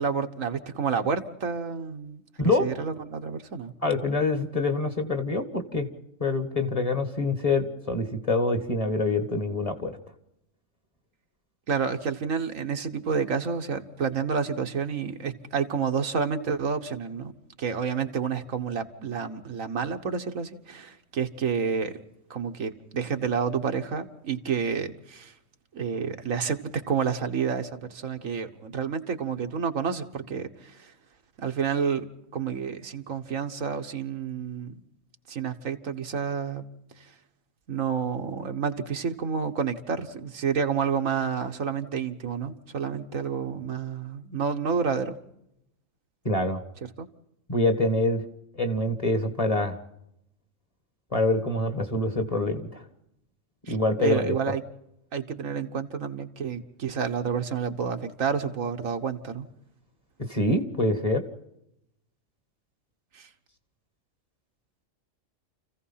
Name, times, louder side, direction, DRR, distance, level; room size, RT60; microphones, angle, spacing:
voice 1, 0.0-3.7 11.7-17.3 17.6-22.0 22.3-25.3 25.7-30.9 31.4-32.0 32.3-34.8 35.3-36.6 37.7-45.2 47.0-47.1 53.7-54.6 55.1-59.5 63.1-63.3, right 6 dB, 85° right, 6 dB, 1.7 m, -29 dB
voice 2, 3.8-5.9 6.2-10.0 46.3-46.6 47.5-48.2 48.5-49.8 51.1-52.8 53.7-54.3 60.3-61.2, left 2 dB, 25° left, 7 dB, 1.9 m, -25 dB
29.0 x 16.0 x 5.7 m, 0.82 s
omnidirectional pair, 1.3 m